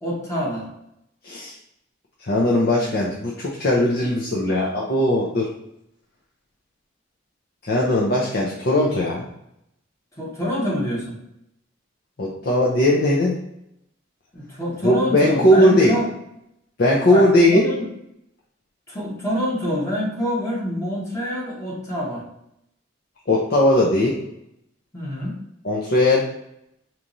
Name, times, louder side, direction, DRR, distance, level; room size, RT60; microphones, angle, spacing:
voice 1, 0.0-0.7 10.2-11.2 14.3-16.1 17.1-17.8 18.9-22.2 24.9-25.3, equal, 15° left, -5 dB, 1.2 m, -26 dB
voice 2, 1.2-1.5 2.2-5.5 7.6-9.2 12.2-13.3 14.8-15.9 16.8-17.6 23.3-24.2 25.6-26.3, left 1 dB, 55° left, -3 dB, 0.6 m, -19 dB
4.9 x 3.0 x 2.6 m, 0.81 s
head